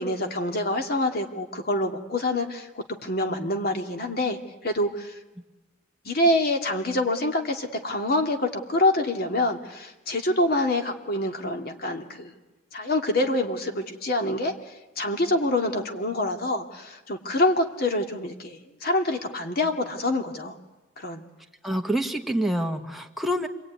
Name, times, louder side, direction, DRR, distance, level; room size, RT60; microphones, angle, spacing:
voice 1, 0.0-5.1 6.0-12.3 12.7-14.5 15.0-20.6 21.0-21.2, left 1 dB, 55° left, 4 dB, 2.6 m, -26 dB
voice 2, 21.6-23.5, equal, ahead, 2 dB, 1.8 m, -26 dB
28.0 x 22.0 x 9.6 m, 1.1 s
head